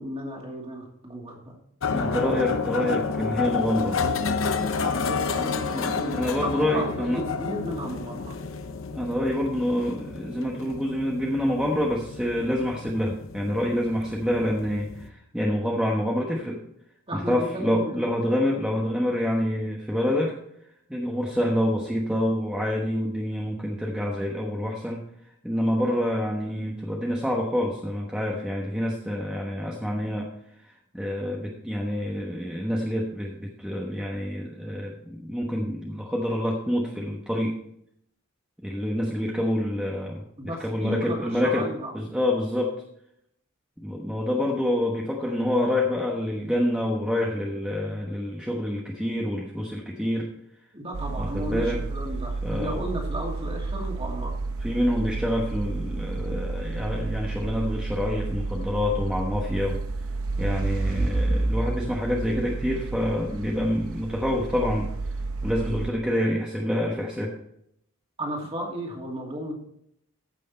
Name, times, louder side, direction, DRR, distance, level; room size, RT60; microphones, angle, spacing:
voice 1, 0.0-1.5 4.4-8.4 17.1-18.1 40.4-41.9 50.7-54.3 68.2-69.5, right 1 dB, 25° right, -1 dB, 2.5 m, -34 dB
sound 1, 1.8-15.1, left 5 dB, 65° left, 0.8 m, -30 dB
voice 2, 1.9-4.0 5.4-7.2 8.9-16.6 17.1-20.4 20.9-25.0 25.4-30.3 30.6-37.6 38.6-41.7 41.9-42.8 43.8-50.3 51.2-51.8 52.4-52.8 54.6-59.8 60.4-64.9 65.4-67.3, left 1 dB, 5° right, -2 dB, 1.1 m, -27 dB
sound 2, 50.9-65.9, right 3 dB, 75° right, 0.9 m, -30 dB
14.5 x 6.3 x 4.4 m, 0.73 s
head